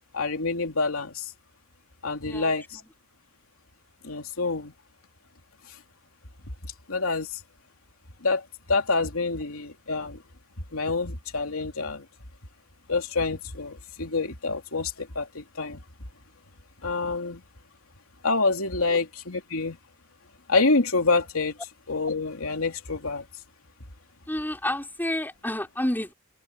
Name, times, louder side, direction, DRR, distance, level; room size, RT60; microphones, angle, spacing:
voice 1, 0.1-1.2 2.0-2.8 4.0-4.7 6.9-7.3 8.2-8.4 8.7-10.2 10.7-12.0 12.9-15.8 16.8-17.4 18.2-19.8 20.5-21.5 21.9-23.2, left 3 dB, 85° left, 2.9 m, -27 dB
voice 2, 2.2-2.9 18.9-19.0 24.3-26.1, left 1 dB, 10° left, 5.1 m, -30 dB
open air
head